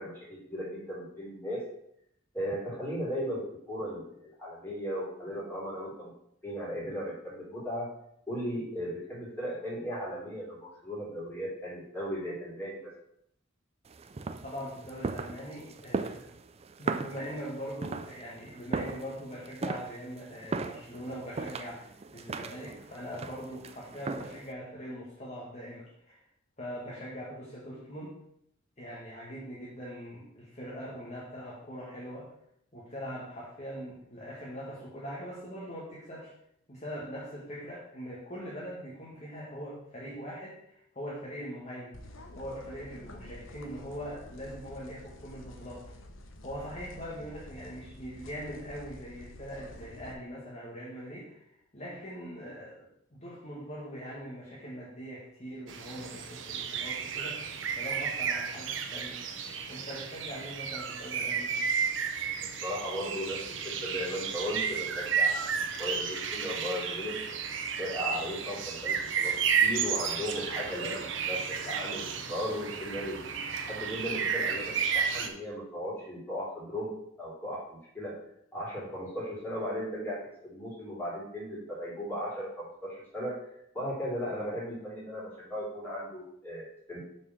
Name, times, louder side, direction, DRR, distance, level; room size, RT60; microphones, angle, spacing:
voice 1, 0.0-1.6 2.3-6.1 6.4-7.9 8.3-12.9 62.6-65.5 65.8-67.2 67.8-69.3 69.6-73.2 73.7-76.9 77.2-78.2 78.5-83.4 83.7-87.0, equal, 10° left, -6 dB, 3.8 m, -36 dB
sound 1, 13.9-24.5, right 3 dB, 30° right, 0.4 m, -38 dB
voice 2, 14.4-16.3 16.8-26.2 26.6-28.1 28.8-32.3 32.7-36.3 36.7-42.0 42.4-45.9 46.4-52.9 53.2-57.4 57.8-59.2 59.7-61.6, equal, 35° left, -6 dB, 1.8 m, -42 dB
sound 2, 41.9-50.1, left 1 dB, 80° left, 1.0 m, -49 dB
sound 3, 55.7-75.3, right 6 dB, 70° right, 0.9 m, -32 dB
7.0 x 4.6 x 6.3 m, 0.72 s
head